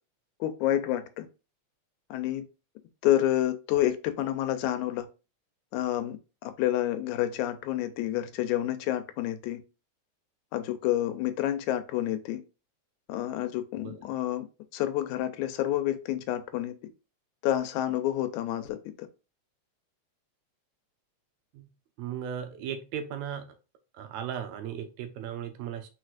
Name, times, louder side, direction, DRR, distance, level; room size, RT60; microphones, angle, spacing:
voice 1, 0.4-1.3 2.1-2.4 3.0-5.1 5.7-6.2 6.4-9.6 10.5-12.4 13.1-14.5 14.7-16.7 17.4-18.8, left 13 dB, 90° left, 2.0 m, -28 dB
voice 2, 22.0-23.6 23.9-25.9, right 9 dB, 75° right, 2.0 m, -36 dB
4.6 x 4.2 x 2.4 m
omnidirectional pair, 3.3 m